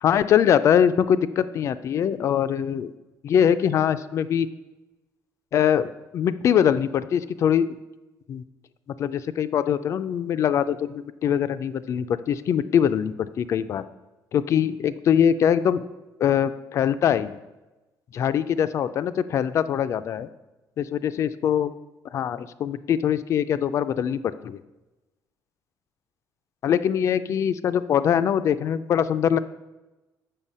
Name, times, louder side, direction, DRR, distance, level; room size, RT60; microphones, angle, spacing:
voice 1, 0.0-2.9 3.2-4.5 5.5-7.7 8.3-8.4 9.0-13.8 14.3-15.8 16.2-17.4 18.1-20.3 20.8-21.7 22.1-24.6 26.6-29.4, left 9 dB, 40° left, 13 dB, 0.4 m, -22 dB
7.3 x 6.8 x 5.4 m, 1.1 s
cardioid pair, 180°, 7 cm